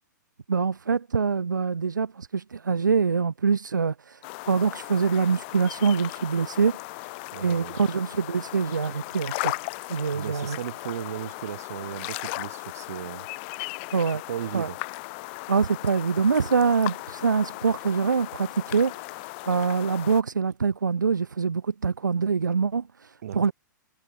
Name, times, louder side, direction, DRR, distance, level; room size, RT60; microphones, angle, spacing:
voice 1, 0.5-4.2 4.5-6.8 7.4-9.5 9.9-10.6 13.9-14.2 14.5-14.7 15.5-19.2 19.5-23.5, right 5 dB, 70° right, 1.0 m, -24 dB
sound 1, 4.2-20.2, left 29 dB, 35° left, 1.2 m, -37 dB
voice 2, 7.3-7.8 10.1-13.3 14.3-14.8 23.2-23.5, right 11 dB, 50° right, 4.2 m, -36 dB
figure-of-eight pair, 115°, 11 cm